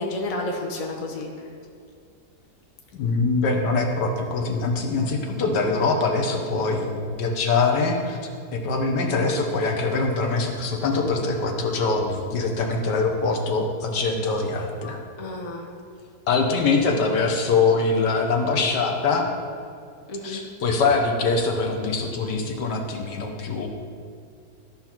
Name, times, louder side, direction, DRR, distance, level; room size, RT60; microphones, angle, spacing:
voice 1, 0.0-1.3 15.2-15.7 20.1-20.4, left 2 dB, 45° left, 1 dB, 0.4 m, -30 dB
voice 2, 2.9-8.2 8.5-15.0 16.3-19.3 20.2-23.7, left 3 dB, 80° left, 2 dB, 1.6 m, -23 dB
13.0 x 5.7 x 4.5 m, 2.3 s
omnidirectional pair, 1.8 m